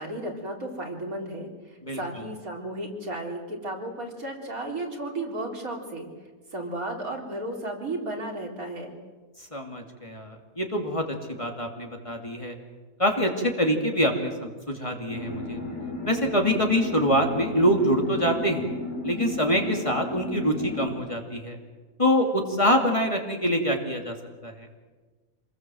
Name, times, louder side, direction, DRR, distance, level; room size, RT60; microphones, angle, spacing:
voice 1, 0.0-6.1 6.5-8.9, right 1 dB, 75° right, 0 dB, 4.2 m, -34 dB
voice 2, 9.5-11.0 11.4-12.6 13.0-15.6 16.0-18.7 19.0-21.6 22.0-24.1 24.4-24.7, equal, 20° left, 2 dB, 2.6 m, -25 dB
sound 1, 15.1-20.9, left 2 dB, 85° left, 4.8 m, -34 dB
27.0 x 21.0 x 7.8 m, 1.3 s
omnidirectional pair, 1.5 m